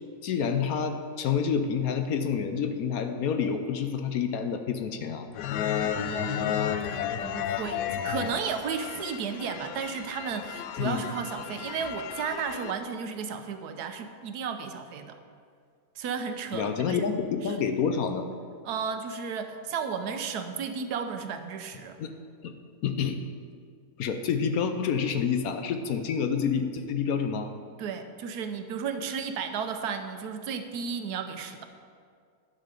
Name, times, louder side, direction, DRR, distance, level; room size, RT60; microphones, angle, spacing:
voice 1, 0.2-5.2 10.8-11.1 16.5-18.3 22.0-22.1 22.4-22.5 22.8-23.2 24.0-27.5, left 6 dB, 70° left, 7 dB, 1.0 m, -28 dB
sound 1, 5.3-12.7, left 9 dB, 90° left, 1.2 m, -33 dB
voice 2, 6.0-15.2 16.0-17.1 17.4-17.6 18.6-22.0 27.8-31.7, right 6 dB, 75° right, 7 dB, 1.2 m, -34 dB
11.5 x 6.5 x 5.1 m, 2.2 s
omnidirectional pair, 1.8 m